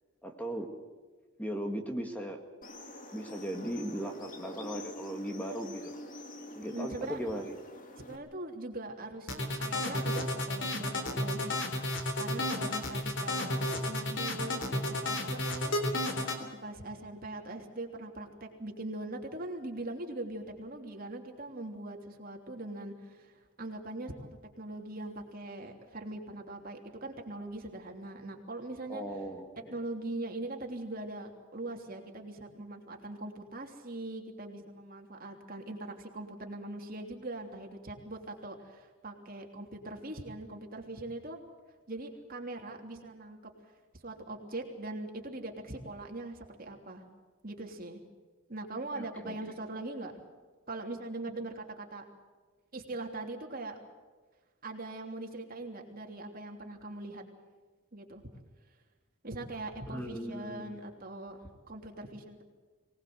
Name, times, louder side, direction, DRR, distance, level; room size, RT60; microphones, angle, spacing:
voice 1, 0.2-0.7 1.4-2.4 3.1-6.0 6.5-7.5 28.9-29.7 49.0-49.4 59.9-60.8, equal, 10° left, 4 dB, 1.8 m, -38 dB
sound 1, 2.6-8.2, left 1 dB, 40° left, 2.4 m, -46 dB
voice 2, 6.7-7.2 8.0-11.6 12.2-15.8 16.1-24.3 24.6-29.0 29.7-41.4 41.9-43.5 44.0-47.0 47.4-48.0 48.5-50.1 50.7-52.0 52.7-53.8 54.6-57.2 57.9-58.2 59.2-62.4, right 2 dB, 45° right, 3 dB, 3.2 m, -41 dB
sound 2, 9.3-16.4, left 1 dB, 65° left, 3.5 m, -32 dB
24.0 x 19.0 x 7.9 m, 1.4 s
head